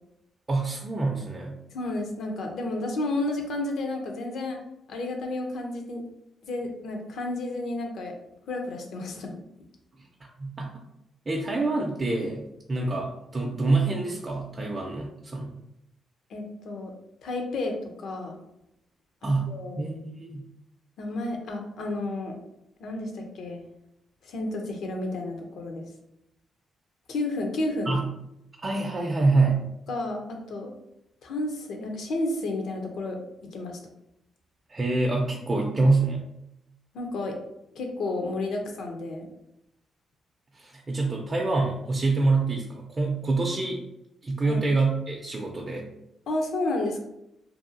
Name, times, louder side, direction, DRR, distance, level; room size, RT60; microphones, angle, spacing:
voice 1, 0.5-1.6 10.4-10.7 11.3-15.5 19.2-20.4 27.9-28.1 28.6-29.7 34.7-36.2 40.5-43.8 44.2-45.9, right 3 dB, 35° right, -1 dB, 0.5 m, -26 dB
voice 2, 1.7-4.6 4.9-6.0 6.4-8.1 8.5-9.3 16.3-16.9 17.2-18.4 19.2-19.8 21.0-22.4 22.8-23.6 24.2-25.8 27.1-28.0 29.9-30.7 31.2-33.2 33.5-33.8 36.9-37.3 37.7-39.3 44.4-44.6 46.3-47.0, left 2 dB, 75° left, 3 dB, 0.5 m, -31 dB
2.6 x 2.3 x 2.6 m, 0.82 s
supercardioid pair, 60°, 0 cm